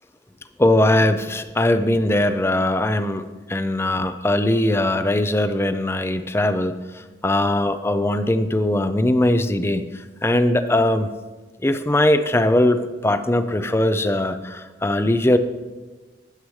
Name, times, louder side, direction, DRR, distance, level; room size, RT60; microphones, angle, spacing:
voice 1, 0.6-3.2 3.5-9.8 10.2-11.1 11.6-15.4, left 1 dB, 15° left, 11 dB, 0.4 m, -20 dB
13.0 x 9.7 x 3.2 m, 1.3 s
head